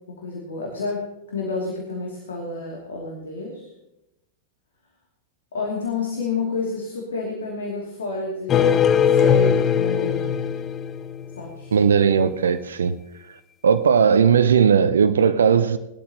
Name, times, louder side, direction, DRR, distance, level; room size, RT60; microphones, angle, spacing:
voice 1, 0.2-3.7 5.5-10.4 11.4-11.8, left 4 dB, 65° left, 2.6 m, -30 dB
sound 1, 8.5-11.5, left 7 dB, 25° left, 0.7 m, -20 dB
voice 2, 11.7-13.0 13.6-15.8, right 7 dB, 70° right, 0.6 m, -17 dB
19.5 x 12.0 x 2.9 m
figure-of-eight pair, 90°, 0 cm